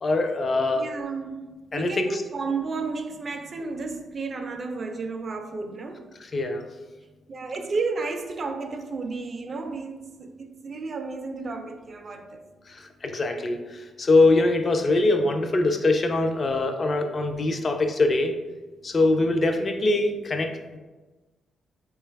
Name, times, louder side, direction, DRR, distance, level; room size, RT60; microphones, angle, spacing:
voice 1, 0.0-0.9 1.7-2.2 6.3-6.6 12.8-18.3 18.8-20.8, left 2 dB, 35° left, 6 dB, 0.4 m, -23 dB
voice 2, 0.7-6.1 7.3-12.4, right 4 dB, 40° right, 5 dB, 0.4 m, -32 dB
3.8 x 2.3 x 3.3 m, 1.2 s
cardioid pair, 120°, 0 cm